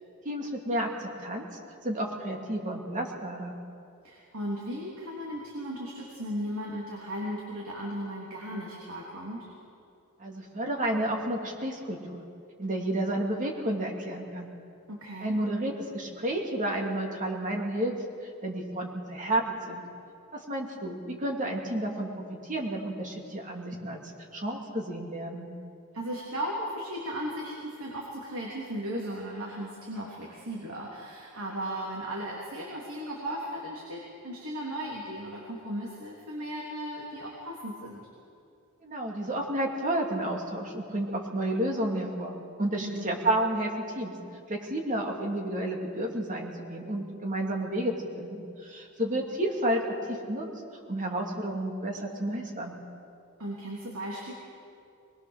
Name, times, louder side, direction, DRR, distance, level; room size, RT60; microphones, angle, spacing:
voice 1, 0.2-1.4 1.8-3.5 10.2-12.2 12.6-14.5 15.2-18.0 18.4-19.8 20.3-24.0 24.3-25.5 38.8-44.1 44.5-50.4 50.9-52.8, right 1 dB, 35° right, 0 dB, 2.8 m, -31 dB
voice 2, 4.0-9.5 14.9-15.4 25.9-38.1 42.8-43.2 53.4-54.3, equal, 70° right, -4 dB, 3.4 m, -36 dB
23.0 x 21.0 x 6.6 m, 2.6 s
head